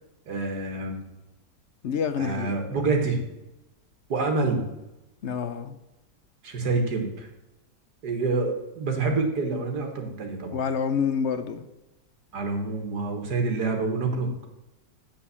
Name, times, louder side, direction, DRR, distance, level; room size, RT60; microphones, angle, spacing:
voice 1, 0.3-1.0 2.2-3.2 4.1-4.6 6.4-7.3 8.0-10.6 12.3-14.3, right 3 dB, 70° right, 2.0 m, -27 dB
voice 2, 1.8-2.8 5.2-5.7 10.5-11.6, left 6 dB, 60° left, 0.7 m, -28 dB
7.8 x 7.2 x 6.9 m
omnidirectional pair, 1.8 m